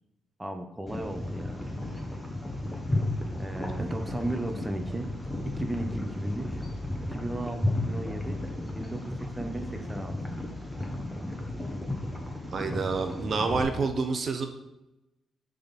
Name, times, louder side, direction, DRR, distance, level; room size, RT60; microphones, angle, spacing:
voice 1, 0.4-1.7 3.4-5.1 5.5-6.6 7.1-8.4 8.7-10.2, right 1 dB, 15° right, 6 dB, 0.8 m, -35 dB
sound 1, 0.9-13.6, left 1 dB, 5° left, 1.5 m, -33 dB
voice 2, 12.5-14.5, right 4 dB, 50° right, 6 dB, 0.8 m, -28 dB
10.0 x 3.8 x 4.1 m, 0.94 s
cardioid pair, 80°, 0 cm